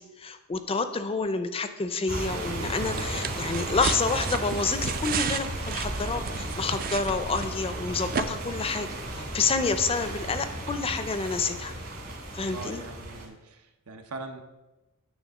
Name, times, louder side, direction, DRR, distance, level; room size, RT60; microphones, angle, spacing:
voice 1, 0.0-8.9 9.2-11.7 12.3-12.8, left 4 dB, 25° left, 10 dB, 0.5 m, -29 dB
sound 1, 2.1-13.3, right 1 dB, 65° right, 2.6 m, -34 dB
sound 2, 2.8-7.8 8.1-8.2, right 6 dB, 40° right, 0.4 m, -33 dB
voice 2, 12.5-14.4, right 3 dB, 85° right, 5 dB, 0.9 m, -41 dB
9.5 x 3.5 x 6.4 m, 1.1 s
head